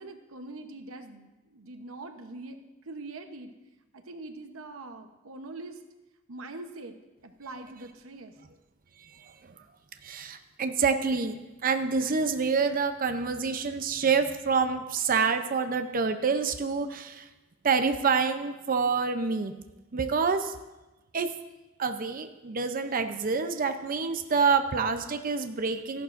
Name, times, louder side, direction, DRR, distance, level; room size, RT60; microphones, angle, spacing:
voice 1, 0.0-2.6 2.8-3.6 3.9-5.8 6.3-7.0 7.2-8.4, right 2 dB, 90° right, 6 dB, 0.9 m, -43 dB
voice 2, 9.0-9.3 10.0-17.3 17.6-19.5 19.9-20.5 21.1-21.3 21.8-26.0, right 5 dB, 45° right, 8 dB, 0.6 m, -27 dB
14.0 x 11.5 x 2.5 m, 1.1 s
head